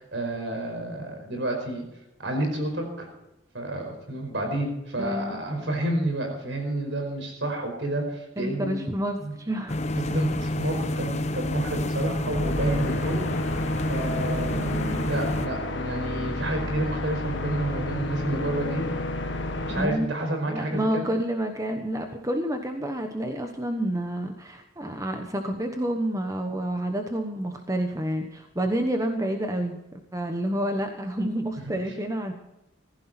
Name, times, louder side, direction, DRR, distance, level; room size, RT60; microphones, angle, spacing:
voice 1, 0.0-1.8 2.2-3.1 3.5-8.8 9.2-9.3 9.9-13.6 13.9-14.7 15.1-18.9 19.4-21.1 31.6-31.7, right 1 dB, 70° right, 3 dB, 5.1 m, -30 dB
voice 2, 5.0-5.4 8.4-9.9 14.4-15.1 19.7-20.1 20.5-32.3, right 1 dB, 15° right, 5 dB, 1.1 m, -29 dB
sound 1, 9.7-15.5, left 1 dB, 35° left, 1.0 m, -29 dB
sound 2, 12.2-19.9, left 2 dB, 65° left, 1.4 m, -31 dB
15.5 x 15.5 x 4.3 m, 0.92 s
head